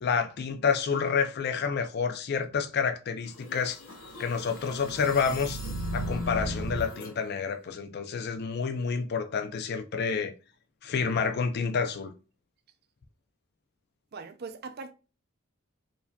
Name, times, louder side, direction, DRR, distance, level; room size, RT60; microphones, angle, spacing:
voice 1, 0.0-3.8 4.2-5.6 5.9-10.3 10.8-12.1, left 5 dB, 50° left, 0.4 m, -29 dB
sound 1, 3.3-7.1, equal, 70° left, 1.4 m, -36 dB
voice 2, 14.1-14.9, right 4 dB, 50° right, 0.4 m, -40 dB
4.6 x 2.6 x 2.2 m
head